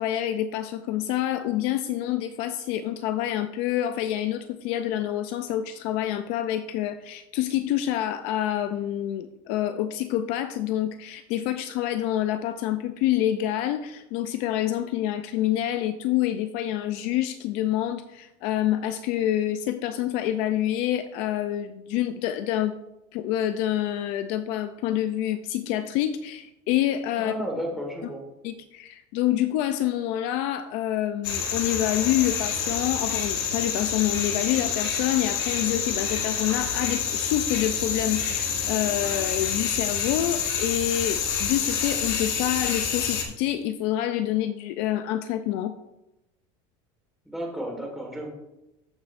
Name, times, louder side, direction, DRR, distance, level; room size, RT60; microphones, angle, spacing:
voice 1, 0.0-22.7 23.1-27.3 28.0-28.1 28.4-45.7, left 12 dB, 50° left, 10 dB, 0.4 m, -27 dB
voice 2, 27.2-28.3 47.2-48.3, equal, ahead, -1 dB, 1.5 m, -33 dB
sound 1, 31.2-43.2, left 7 dB, 70° left, 1.6 m, -28 dB
14.0 x 6.0 x 2.5 m, 0.94 s
cardioid pair, 180°, 14 cm